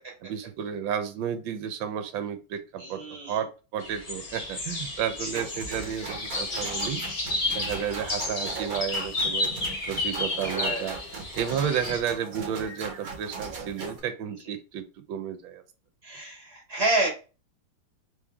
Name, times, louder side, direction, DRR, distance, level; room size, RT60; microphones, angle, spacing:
voice 1, 0.2-7.0 7.5-9.5 9.9-11.0 11.3-15.6, right 8 dB, 75° right, 10 dB, 1.3 m, -32 dB
voice 2, 2.8-3.4 5.2-5.3 10.5-10.9 14.5-14.6 16.0-17.1, right 2 dB, 35° right, -1 dB, 1.8 m, -29 dB
sound 1, 3.8-12.0, left 2 dB, 65° left, 0.3 m, -32 dB
sound 2, 5.3-14.0, right 4 dB, 55° right, 1.2 m, -39 dB
3.6 x 3.1 x 3.4 m, 0.33 s
omnidirectional pair, 2.2 m